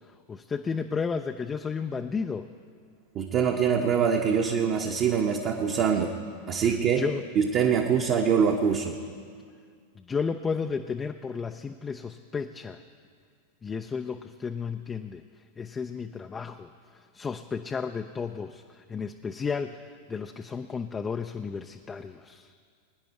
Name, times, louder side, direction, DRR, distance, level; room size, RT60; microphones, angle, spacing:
voice 1, 0.3-2.5 7.0-7.2 10.0-12.8 13.6-15.2 15.6-16.7 17.1-19.8 20.1-22.5, left 5 dB, 15° left, 7 dB, 0.4 m, -33 dB
voice 2, 3.1-6.1 6.5-7.0 7.3-9.0, right 7 dB, 35° right, 2 dB, 1.0 m, -24 dB
22.5 x 10.0 x 4.6 m, 2.1 s
figure-of-eight pair, 90°, 0 cm